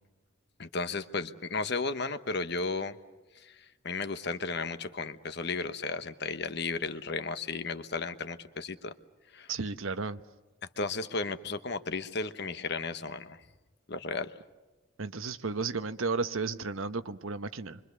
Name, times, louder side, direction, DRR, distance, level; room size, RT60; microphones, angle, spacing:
voice 1, 0.6-2.9 3.4-3.5 3.8-8.9 9.3-9.5 10.8-13.4 13.9-14.3, left 4 dB, 50° left, 1.1 m, -34 dB
voice 2, 9.5-10.2 15.0-17.8, right 4 dB, 75° right, 1.0 m, -33 dB
28.0 x 24.5 x 6.8 m
head